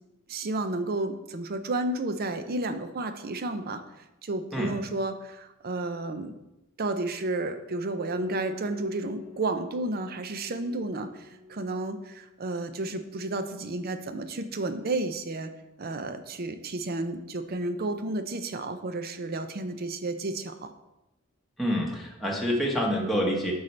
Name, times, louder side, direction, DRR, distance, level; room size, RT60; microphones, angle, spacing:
voice 1, 0.3-3.8 4.2-6.3 6.8-15.5 15.8-20.7, right 2 dB, 50° right, 9 dB, 0.6 m, -32 dB
Piano, 8.1-17.4, left 4 dB, 80° right, 2.2 m, -47 dB
voice 2, 21.6-23.5, equal, ahead, -3 dB, 1.1 m, -27 dB
8.8 x 5.5 x 3.3 m, 0.95 s
head